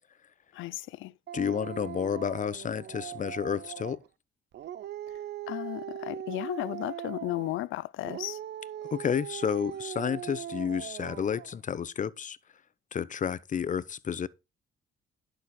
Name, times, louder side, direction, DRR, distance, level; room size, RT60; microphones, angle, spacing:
voice 1, 0.5-1.1 5.5-8.4, left 17 dB, 85° left, 0.5 m, -34 dB
voice 2, 1.3-4.0 8.9-12.4 12.9-14.3, left 7 dB, 40° left, 0.7 m, -31 dB
Dog, 1.3-4.1 4.5-7.6 8.0-11.6, right 11 dB, 60° right, 0.6 m, -40 dB
11.0 x 6.4 x 4.3 m
cardioid pair, 90°, 20 cm